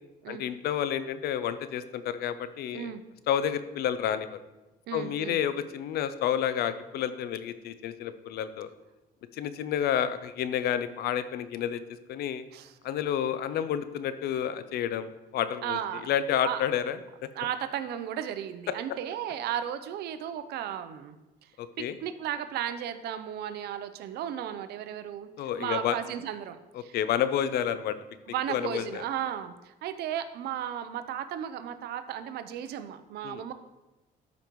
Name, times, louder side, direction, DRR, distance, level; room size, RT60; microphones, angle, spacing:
voice 1, 0.3-2.9 3.3-4.4 4.9-8.7 9.4-11.8 12.1-12.4 12.8-15.8 16.1-17.0 18.7-18.8 21.6-22.0 25.4-26.0 26.9-27.9 28.5-29.0 33.2-33.4, left 9 dB, 70° left, 13 dB, 0.6 m, -30 dB
voice 2, 4.9-5.4 12.5-12.8 15.6-16.1 16.4-16.6 17.3-21.2 21.8-27.0 28.3-33.5, right 10 dB, 70° right, 11 dB, 0.6 m, -35 dB
12.5 x 5.2 x 3.1 m, 1.0 s
cardioid pair, 110°, 17 cm